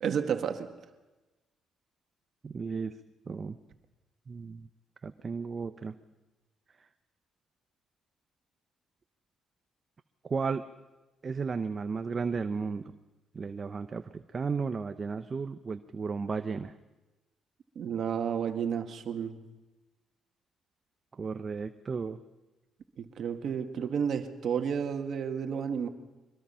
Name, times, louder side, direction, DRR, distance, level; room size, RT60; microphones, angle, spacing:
voice 1, 0.0-0.7 17.8-19.4 23.0-25.9, right 7 dB, 65° right, 6 dB, 1.9 m, -31 dB
voice 2, 2.4-2.9 3.3-3.6 4.3-4.7 5.0-5.9 10.2-10.6 11.2-12.8 13.3-16.7 21.2-22.2, right 5 dB, 40° right, 9 dB, 0.8 m, -34 dB
24.0 x 21.5 x 5.7 m, 1.1 s
cardioid pair, 90°, 0 cm